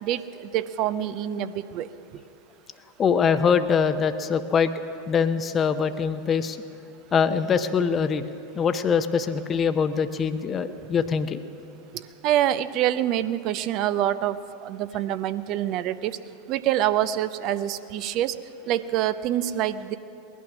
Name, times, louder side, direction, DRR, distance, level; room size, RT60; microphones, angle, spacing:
voice 1, 0.0-1.9 12.2-16.2 16.5-18.4 18.7-20.0, right 12 dB, 45° right, 14 dB, 0.6 m, -26 dB
voice 2, 3.0-4.7 5.1-6.6 7.1-8.2 8.5-11.4, left 6 dB, 30° left, 10 dB, 0.8 m, -23 dB
19.0 x 12.0 x 6.1 m, 2.7 s
figure-of-eight pair, 90°, 0 cm